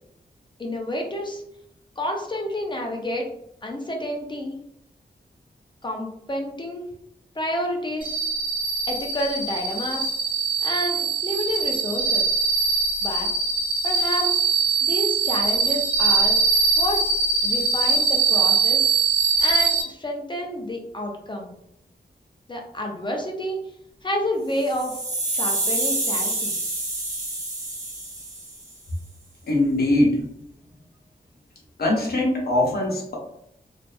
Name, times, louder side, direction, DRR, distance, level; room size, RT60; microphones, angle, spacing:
voice 1, 0.6-1.4 2.0-3.3 3.6-4.6 5.8-6.9 7.4-8.3 8.9-10.1 10.6-12.4 13.0-13.3 13.8-14.4 14.8-16.4 16.8-17.0 17.4-18.9 19.4-21.5 22.5-23.6 24.0-25.0 25.3-26.6, left 1 dB, 25° left, 1 dB, 0.4 m, -29 dB
sound 1, 8.0-19.8, right 4 dB, 85° right, 1.2 m, -22 dB
sound 2, 24.5-28.7, right 2 dB, 20° right, 0.6 m, -28 dB
voice 2, 29.4-30.3 31.8-33.1, left 1 dB, 65° left, -1 dB, 0.7 m, -21 dB
2.5 x 2.4 x 2.2 m, 0.76 s
wide cardioid pair, 100°, 17 cm